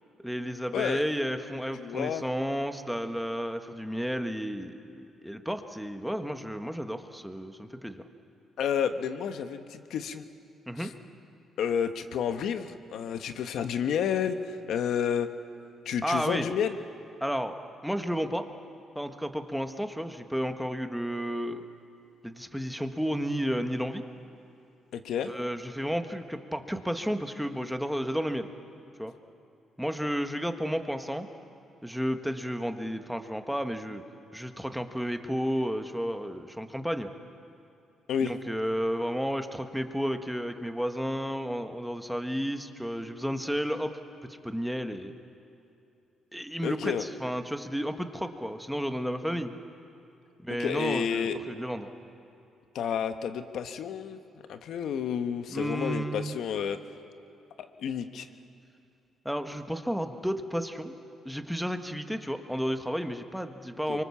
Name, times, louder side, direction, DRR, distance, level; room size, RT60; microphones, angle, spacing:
voice 1, 0.2-8.0 10.7-10.9 16.0-16.5 17.2-17.6 17.8-18.4 18.9-21.7 22.2-24.0 25.2-28.5 29.0-29.1 29.8-31.3 31.8-34.0 34.3-37.1 38.2-43.9 44.4-45.1 46.3-49.5 50.4-51.9 55.5-56.4 59.2-60.9 61.2-64.0, equal, ahead, 6 dB, 1.5 m, -32 dB
voice 2, 1.7-2.2 8.6-10.3 10.8-10.9 11.6-15.3 15.8-16.8 24.9-25.3 38.1-38.3 46.6-47.1 50.6-51.4 52.7-54.2 54.5-56.8 57.6-58.3 63.9-64.0, left 8 dB, 75° left, 8 dB, 1.2 m, -30 dB
25.0 x 24.0 x 7.2 m, 2.7 s
cardioid pair, 90°, 0 cm